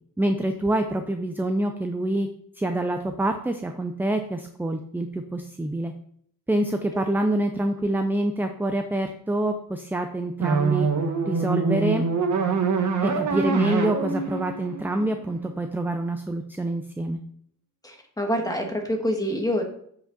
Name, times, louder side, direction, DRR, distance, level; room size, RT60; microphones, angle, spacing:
voice 1, 0.2-2.3 2.6-5.9 6.5-10.9 11.3-12.1 13.0-17.2, right 1 dB, 5° right, 6 dB, 0.5 m, -26 dB
sound 1, 10.4-15.5, right 4 dB, 60° right, 1.1 m, -25 dB
voice 2, 17.8-19.6, equal, 10° left, 2 dB, 1.4 m, -26 dB
7.8 x 5.1 x 4.0 m, 0.66 s
wide cardioid pair, 125°, 33 cm